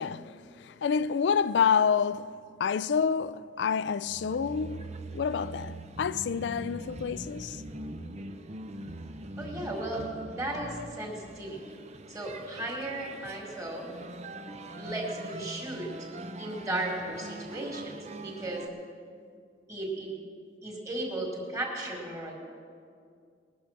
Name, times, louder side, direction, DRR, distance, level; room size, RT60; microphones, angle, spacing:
voice 1, 0.0-2.3 2.6-7.6, left 6 dB, 75° left, 0.4 m, -28 dB
sound 1, 4.0-18.7, right 2 dB, 40° right, 0.7 m, -42 dB
voice 2, 9.4-10.0 10.3-11.6 12.1-13.9 14.8-15.9 16.4-18.6 19.7-20.1 20.6-22.3, right 1 dB, 20° right, 2.3 m, -35 dB
20.5 x 6.8 x 5.8 m
head